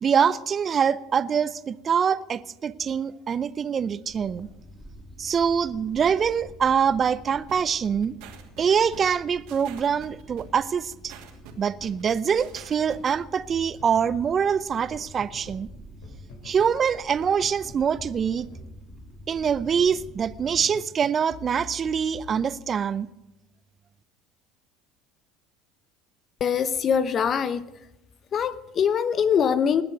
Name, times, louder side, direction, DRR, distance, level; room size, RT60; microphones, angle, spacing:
voice 1, 0.0-4.5 5.2-8.2 8.6-11.1 11.6-15.7 16.4-18.5 19.3-23.1, right 7 dB, 35° right, 0.7 m, -24 dB
sound 1, 4.1-20.6, equal, 10° left, 4.6 m, -47 dB
sound 2, 7.5-13.1, right 10 dB, 70° right, 2.8 m, -46 dB
sound 3, 13.5-15.7 16.0-16.8 17.1-20.1 20.5-22.9, left 3 dB, 75° left, 4.2 m, -47 dB
voice 2, 26.4-27.6 28.3-29.8, left 7 dB, 45° left, 1.0 m, -23 dB
19.5 x 7.1 x 9.1 m
hypercardioid pair, 80°, 0 cm